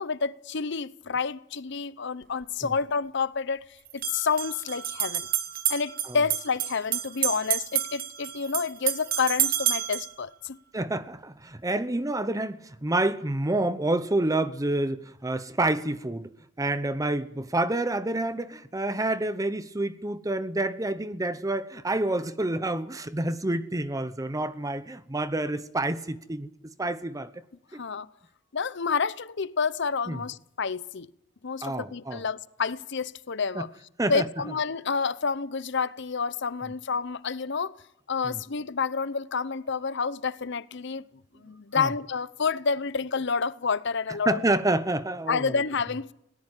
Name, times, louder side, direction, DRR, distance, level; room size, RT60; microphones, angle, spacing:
voice 1, 0.0-3.6 3.9-5.3 5.7-10.6 27.7-28.1 28.5-31.1 31.4-33.7 34.1-37.7 38.1-41.0 41.4-44.4 45.3-46.1, left 5 dB, 65° left, 0.8 m, -29 dB
sound 1, 2.2-2.3 3.9-10.1, right 11 dB, 50° right, 1.4 m, -29 dB
voice 2, 10.7-16.3 16.6-27.3 27.7-27.8 30.1-30.2 31.6-32.2 33.5-33.7 34.0-34.2 38.2-38.4 41.7-41.9 44.3-45.6, right 2 dB, 15° right, 0.8 m, -28 dB
20.5 x 18.0 x 9.0 m
head